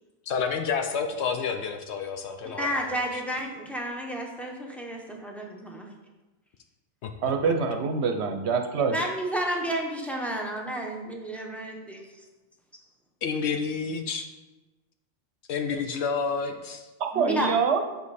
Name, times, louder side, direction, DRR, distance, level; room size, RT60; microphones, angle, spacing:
voice 1, 0.3-3.2 7.0-7.3 13.2-14.3 15.5-16.9, left 5 dB, 65° left, 5 dB, 0.9 m, -30 dB
voice 2, 2.4-5.9 8.9-12.0 17.1-17.5, right 1 dB, ahead, -1 dB, 0.7 m, -31 dB
voice 3, 7.2-8.9 17.1-17.8, right 5 dB, 65° right, 5 dB, 0.9 m, -25 dB
6.4 x 5.2 x 4.1 m, 1.1 s
omnidirectional pair, 1.3 m